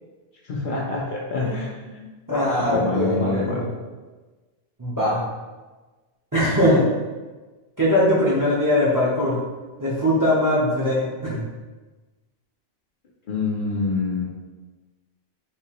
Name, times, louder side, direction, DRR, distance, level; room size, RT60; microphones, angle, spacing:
voice 1, 0.5-1.7 2.5-3.7 13.3-14.3, left 3 dB, 55° left, -4 dB, 0.7 m, -25 dB
voice 2, 1.4-2.0 2.3-3.6 4.8-5.2 6.3-6.8 7.8-9.4 9.8-11.4, left 1 dB, 20° right, -7 dB, 0.7 m, -21 dB
3.6 x 2.8 x 2.9 m, 1.3 s
omnidirectional pair, 1.1 m